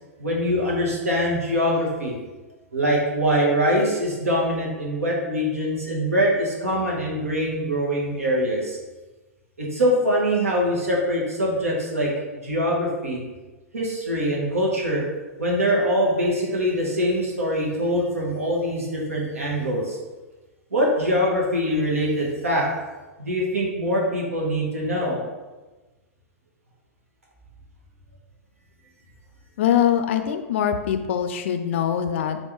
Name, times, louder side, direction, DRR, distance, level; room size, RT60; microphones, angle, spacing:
voice 1, 0.2-2.2 2.7-8.8 9.6-12.1 12.4-13.2 13.7-15.0 15.4-20.0 20.7-22.7 23.2-25.2, equal, 80° right, -3 dB, 1.2 m, -23 dB
voice 2, 29.6-32.4, left 9 dB, 55° left, 8 dB, 0.4 m, -23 dB
3.9 x 3.4 x 3.0 m, 1.2 s
figure-of-eight pair, 105°, 8 cm